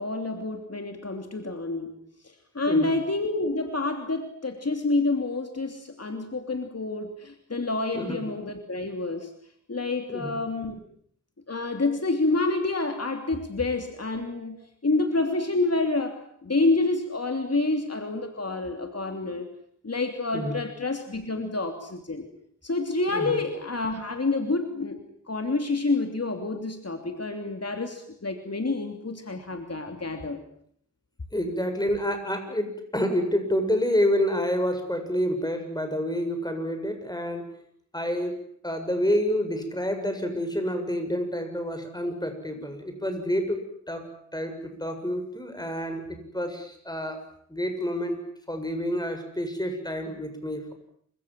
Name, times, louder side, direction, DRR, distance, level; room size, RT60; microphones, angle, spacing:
voice 1, 0.0-2.0 2.5-9.3 9.7-10.8 11.5-19.5 19.8-22.3 22.6-30.4, left 3 dB, 55° left, 5 dB, 3.2 m, -28 dB
voice 2, 31.3-37.5 37.9-47.2 47.5-48.2 48.5-50.7, equal, 15° left, 6 dB, 7.6 m, -28 dB
28.5 x 25.5 x 7.7 m, 0.65 s
wide cardioid pair, 55°, 29 cm